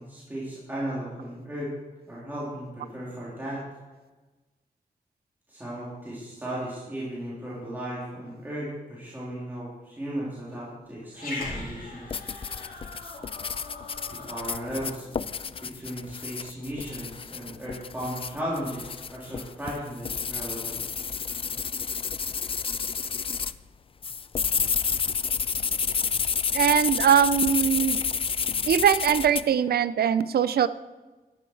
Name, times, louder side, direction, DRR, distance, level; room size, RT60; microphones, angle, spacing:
voice 1, 0.1-1.7 2.0-3.6 5.5-12.2 14.1-15.1 15.6-20.8, right 1 dB, 10° right, -8 dB, 3.4 m, -35 dB
Growling, 11.1-15.8, left 3 dB, 70° left, 4.5 m, -41 dB
sound 1, 12.1-23.6 24.0-29.4, left 6 dB, 35° left, 0.4 m, -30 dB
voice 2, 26.5-28.0 28.7-30.7, right 8 dB, 85° right, 15 dB, 0.5 m, -21 dB
13.0 x 11.0 x 4.7 m, 1.2 s
wide cardioid pair, 130°, 16 cm